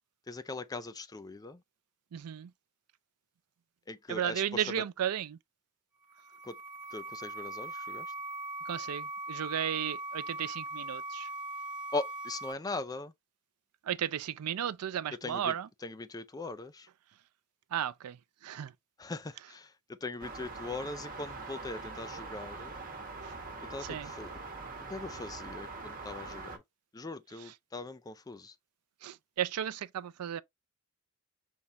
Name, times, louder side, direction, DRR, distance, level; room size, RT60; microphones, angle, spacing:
voice 1, 0.3-1.6 3.9-4.9 6.4-6.6 6.9-8.1 11.9-13.1 15.2-15.6 15.8-16.9 19.0-22.7 23.7-24.3 24.9-26.6 26.9-28.6, left 3 dB, 15° left, 0.4 m, -40 dB
voice 2, 2.1-2.5 4.1-5.4 8.7-11.3 13.9-15.7 17.7-18.2 18.4-18.7 23.2-23.3 23.9-24.1 29.0-30.4, right 9 dB, 85° right, 0.4 m, -34 dB
sound 1, 6.0-12.5, right 2 dB, 5° right, 0.9 m, -40 dB
sound 2, 20.2-26.6, right 3 dB, 40° right, 1.5 m, -43 dB
5.3 x 3.5 x 2.8 m
head